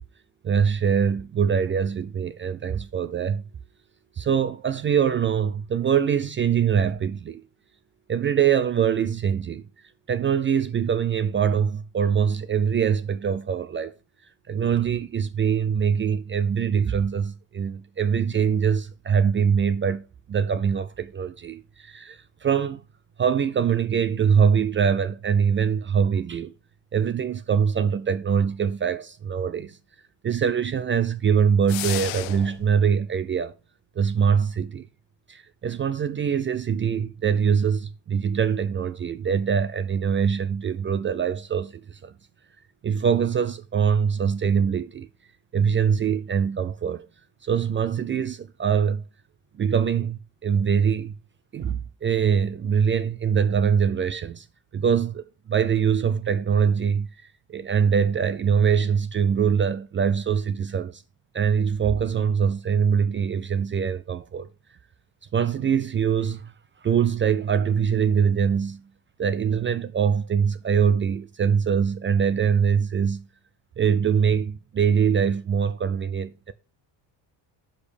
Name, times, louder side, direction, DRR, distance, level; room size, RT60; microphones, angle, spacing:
voice 1, 0.4-3.4 4.2-7.4 8.1-9.6 10.1-13.9 14.5-22.8 23.2-26.5 26.9-29.8 30.2-33.5 34.0-34.9 35.3-42.1 42.8-45.1 45.5-47.1 47.4-49.0 49.6-51.2 51.5-54.5 54.7-57.1 57.5-61.0 61.3-64.5 65.3-66.5 66.8-68.8 69.2-73.2 73.8-76.5, right 7 dB, 30° right, 0.4 m, -23 dB
sound 1, 31.7-32.7, left 19 dB, 85° left, 0.6 m, -32 dB
8.3 x 5.2 x 4.9 m
cardioid pair, 150°, 45 cm